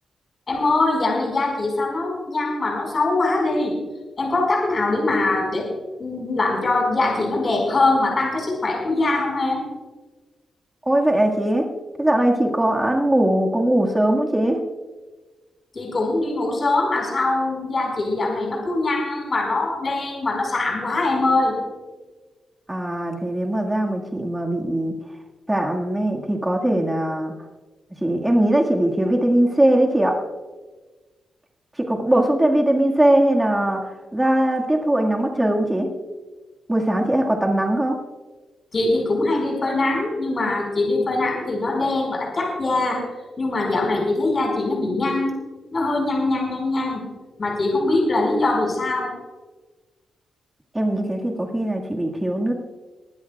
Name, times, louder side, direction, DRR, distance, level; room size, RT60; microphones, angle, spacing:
voice 1, 0.5-3.7 4.2-5.7 6.0-9.6 15.7-21.6 38.7-43.0 43.4-45.4 45.7-47.0 47.4-49.1, left 2 dB, 35° left, -1 dB, 4.7 m, -22 dB
voice 2, 10.9-11.6 12.0-14.6 22.7-24.9 25.5-27.3 28.0-30.2 31.8-35.9 36.7-38.0 50.7-52.5, right 1 dB, 10° right, 1 dB, 1.8 m, -20 dB
22.0 x 15.5 x 2.3 m, 1.3 s
wide cardioid pair, 140°, 0 cm